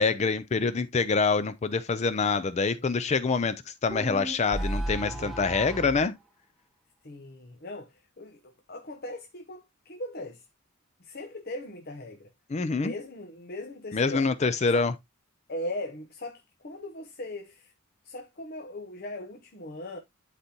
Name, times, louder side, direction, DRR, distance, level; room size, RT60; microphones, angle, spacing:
voice 1, 0.0-6.1 12.5-12.9 13.9-14.9, left 4 dB, 35° left, 0.4 m, -26 dB
voice 2, 2.7-3.1 5.1-5.5 7.0-8.4 8.7-10.5 11.0-12.3 12.8-14.3 14.7-14.9 15.5-17.7 18.0-20.0, left 1 dB, 50° left, 0.9 m, -39 dB
sound 1, 3.9-6.0, right 1 dB, ahead, 4.0 m, -33 dB
11.5 x 4.1 x 2.8 m
head